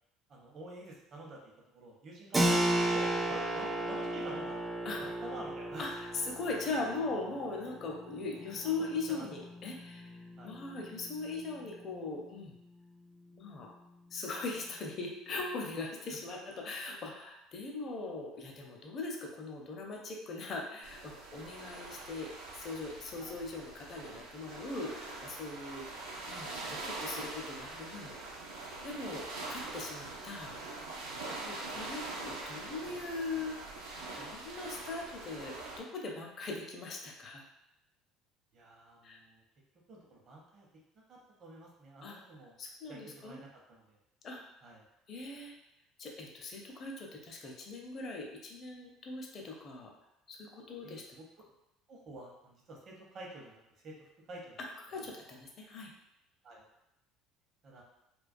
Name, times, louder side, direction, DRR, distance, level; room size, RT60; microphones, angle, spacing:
voice 1, 0.3-1.4 1.7-2.5 2.9-4.7 5.0-6.0 6.6-6.7 8.6-8.7 9.1-9.3 10.4-10.6 16.1-16.2 23.2-23.4 25.9-26.0 31.7-31.9 38.5-39.4 39.9-40.7 41.1-42.6 42.9-44.0 44.6-44.8 50.8-51.2 51.9-53.9 54.3-54.6 55.0-55.1 56.4-56.6 57.6-57.8, right 1 dB, 50° right, -2 dB, 0.7 m, -49 dB
Keyboard (musical), 2.3-12.7, right 1 dB, 15° right, 0.4 m, -35 dB
voice 2, 5.8-10.1 10.4-12.6 13.3-13.7 14.1-28.1 28.8-30.5 31.4-33.6 34.1-37.4 39.0-39.2 42.0-42.2 42.6-43.4 44.2-44.4 45.1-45.5 46.0-49.9 50.3-51.2 54.9-55.9, left 3 dB, 45° left, 0 dB, 0.5 m, -40 dB
sound 1, 20.8-35.8, right 2 dB, 80° right, 0.4 m, -43 dB
2.2 x 2.2 x 2.5 m, 0.86 s
hypercardioid pair, 65°, 0 cm